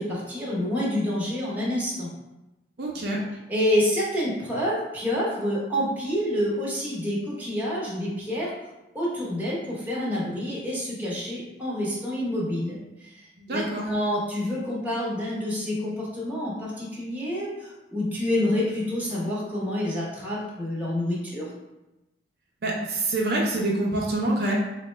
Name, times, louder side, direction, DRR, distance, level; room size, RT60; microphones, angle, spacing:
voice 1, 0.0-2.1 3.5-8.5 8.9-13.2 13.5-21.5, left 1 dB, 10° right, -7 dB, 0.8 m, -28 dB
voice 2, 2.8-3.2 13.4-13.8 22.6-24.5, right 2 dB, 55° right, -3 dB, 0.5 m, -26 dB
4.1 x 2.1 x 3.2 m, 0.98 s
head